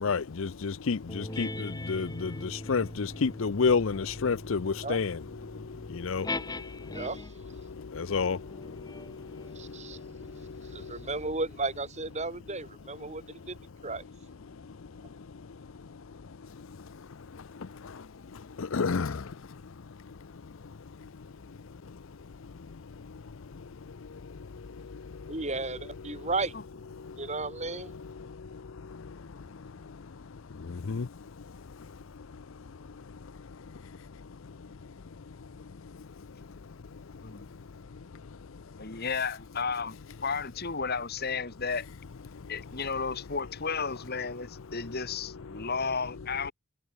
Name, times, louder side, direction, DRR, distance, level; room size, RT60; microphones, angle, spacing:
voice 1, 0.0-2.3 2.7-5.2 6.0-6.3 8.0-8.4 18.6-19.1 30.9-31.0, left 5 dB, 60° left, 0.5 m, -28 dB
sound 1, 1.1-7.5 8.2-13.2, left 2 dB, 15° left, 2.4 m, -42 dB
voice 2, 6.9-7.3 9.5-10.0 10.6-13.6 13.8-14.0 25.3-26.5 27.2-27.9, right 3 dB, 30° right, 3.3 m, -34 dB
voice 3, 38.8-40.0 40.2-41.9 42.5-46.5, left 5 dB, 45° left, 1.8 m, -33 dB
head